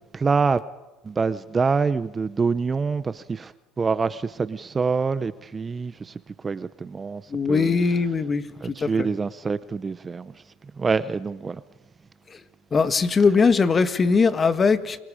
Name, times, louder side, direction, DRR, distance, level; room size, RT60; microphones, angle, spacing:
voice 1, 0.1-0.6 1.0-7.7 8.6-10.4 10.8-11.6, right 5 dB, 25° right, 0.7 m, -26 dB
voice 2, 7.3-9.1 12.7-15.0, left 4 dB, 25° left, 1.7 m, -20 dB
29.5 x 23.5 x 5.0 m
supercardioid pair, 105°, 0 cm